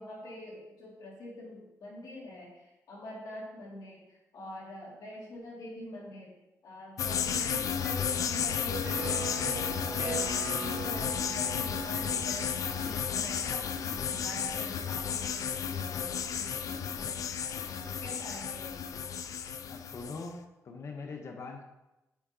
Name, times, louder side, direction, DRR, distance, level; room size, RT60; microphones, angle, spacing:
voice 1, 0.0-6.3 6.6-17.4 17.6-19.0, left 1 dB, 85° left, -4 dB, 2.3 m, -45 dB
sound 1, 7.0-20.3, left 7 dB, 65° left, 0.4 m, -33 dB
sound 2, 8.8-14.4, right 5 dB, 80° right, 1.5 m, -41 dB
voice 2, 19.7-21.7, left 4 dB, 50° left, 3 dB, 0.8 m, -42 dB
8.5 x 6.1 x 2.8 m, 0.98 s
wide cardioid pair, 145°, 6 cm